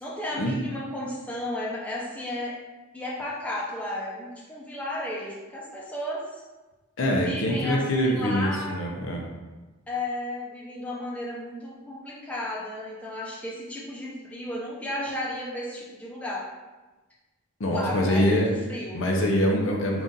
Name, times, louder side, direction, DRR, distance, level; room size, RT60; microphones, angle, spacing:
voice 1, 0.0-2.6 2.9-6.4 7.2-8.9 9.9-16.5 17.7-19.0, left 1 dB, 5° left, -6 dB, 0.5 m, -33 dB
voice 2, 7.0-9.2 17.6-18.5 18.9-20.0, equal, 60° left, 1 dB, 0.6 m, -24 dB
3.9 x 2.4 x 3.8 m, 1.2 s
head